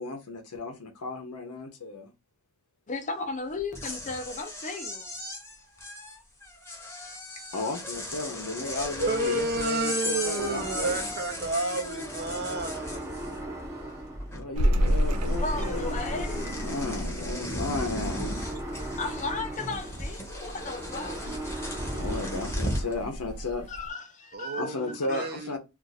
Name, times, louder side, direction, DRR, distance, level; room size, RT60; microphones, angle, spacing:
voice 1, 0.0-2.1 7.5-11.0 14.3-18.4 21.9-23.7 24.6-25.6, left 3 dB, 80° left, 0.8 m, -34 dB
voice 2, 2.9-5.1 13.9-14.0 15.0-16.8 19.0-21.3 23.7-24.8 25.1-25.3, left 3 dB, 35° left, 0.6 m, -36 dB
sound 1, 3.6-13.6 13.9-14.6 14.9-22.9, left 1 dB, 10° left, 0.9 m, -37 dB
voice 3, 9.0-13.1 24.3-25.6, right 2 dB, 45° right, 0.7 m, -31 dB
sound 2, 10.4-22.9, right 1 dB, 15° right, 0.7 m, -39 dB
sound 3, 14.5-23.9, equal, 80° right, 0.5 m, -32 dB
2.5 x 2.4 x 4.0 m
head